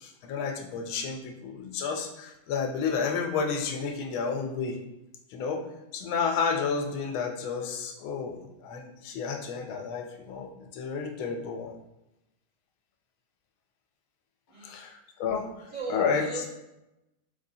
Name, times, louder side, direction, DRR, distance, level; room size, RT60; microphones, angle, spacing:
voice 1, 0.0-4.8 5.3-5.6 5.9-11.7 14.6-16.3, left 5 dB, 90° left, 3 dB, 1.4 m, -31 dB
voice 2, 15.7-16.5, right 3 dB, 70° right, -7 dB, 2.2 m, -37 dB
4.2 x 3.3 x 2.7 m, 0.93 s
omnidirectional pair, 2.2 m